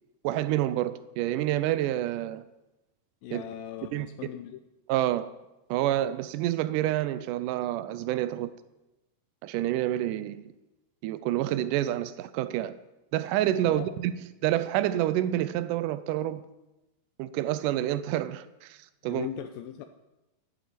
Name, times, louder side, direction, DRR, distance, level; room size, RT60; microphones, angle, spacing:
voice 1, 0.2-2.4 3.3-3.4 3.9-4.3 4.9-5.3 5.7-8.5 9.4-10.4 11.0-12.8 13.1-14.1 14.4-16.4 17.2-19.3, right 13 dB, 85° right, 1.8 m, -28 dB
voice 2, 3.2-4.6 13.6-13.9 19.0-19.8, left 11 dB, 80° left, 2.4 m, -39 dB
11.0 x 9.3 x 7.5 m
omnidirectional pair, 4.3 m